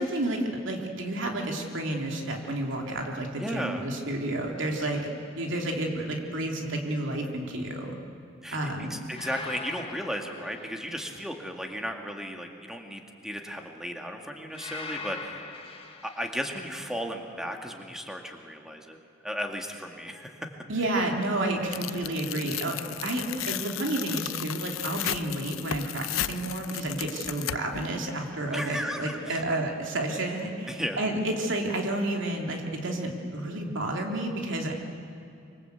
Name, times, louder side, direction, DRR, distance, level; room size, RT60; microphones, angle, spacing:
voice 1, 0.0-5.1 5.4-7.9 8.5-9.0 20.7-34.7, right 1 dB, 65° right, 1 dB, 3.0 m, -30 dB
voice 2, 3.4-3.8 8.4-15.5 16.0-19.0 19.2-20.3 28.5-29.4 30.7-31.0, equal, ahead, 3 dB, 2.1 m, -35 dB
sound 1, 4.9-5.3 9.1-11.3 14.5-16.6, left 4 dB, 30° left, 1.8 m, -42 dB
Tearing, 21.7-27.9, left 12 dB, 90° left, 0.6 m, -34 dB
25.5 x 24.0 x 8.3 m, 2.5 s
head